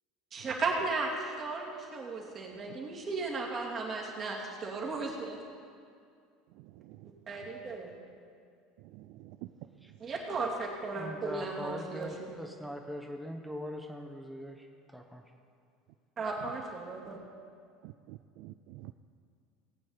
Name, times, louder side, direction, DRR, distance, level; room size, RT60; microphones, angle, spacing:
voice 1, 0.3-5.4 7.3-7.9 10.0-12.3 16.2-17.2, right 3 dB, 35° right, -1 dB, 2.7 m, -35 dB
voice 2, 6.5-7.1 8.8-9.4 17.8-18.9, right 16 dB, 60° right, 9 dB, 0.3 m, -50 dB
voice 3, 10.9-15.2, equal, ahead, 2 dB, 1.0 m, -42 dB
19.0 x 8.7 x 4.1 m, 2.3 s
hypercardioid pair, 70°, 0 cm